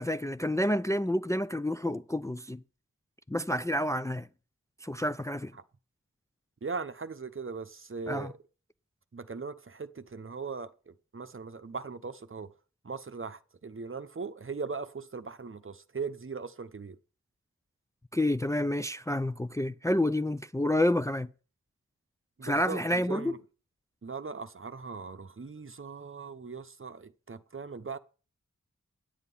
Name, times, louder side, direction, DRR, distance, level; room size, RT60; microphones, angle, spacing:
voice 1, 0.0-2.6 3.3-4.3 4.8-5.5 8.1-8.3 18.1-21.3 22.4-23.3, left 1 dB, 10° left, 0.4 m, -29 dB
voice 2, 6.6-8.4 9.1-12.5 12.8-17.0 22.4-23.4 24.0-28.0, right 4 dB, 45° right, 0.8 m, -39 dB
10.0 x 8.1 x 5.5 m
wide cardioid pair, 45°, 30 cm